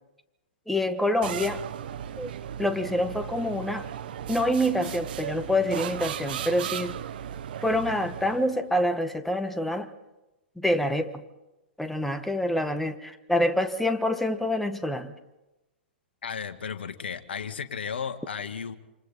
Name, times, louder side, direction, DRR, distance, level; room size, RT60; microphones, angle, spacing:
voice 1, 0.7-1.6 2.2-2.3 2.6-3.9 4.3-7.0 7.6-9.9 10.6-11.2 11.8-15.1, left 1 dB, 5° left, 9 dB, 1.4 m, -26 dB
sound 1, 1.2-8.6, right 9 dB, 50° right, 1.2 m, -36 dB
voice 2, 16.2-18.7, left 6 dB, 60° left, 9 dB, 1.8 m, -34 dB
28.0 x 27.5 x 4.3 m, 1.0 s
figure-of-eight pair, 115°, 6 cm